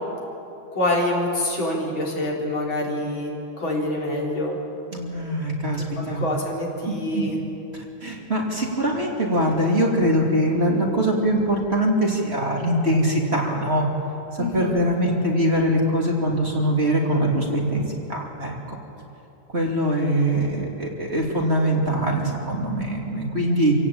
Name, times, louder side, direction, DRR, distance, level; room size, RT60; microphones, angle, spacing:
voice 1, 0.7-4.6 6.0-7.4 14.4-14.8, left 1 dB, 80° left, -3 dB, 4.7 m, -26 dB
voice 2, 4.9-6.2 6.9-7.2 7.7-13.9 14.3-18.8 19.5-23.7, right 1 dB, 30° right, -1 dB, 3.2 m, -23 dB
26.5 x 17.0 x 8.7 m, 2.9 s
omnidirectional pair, 2.1 m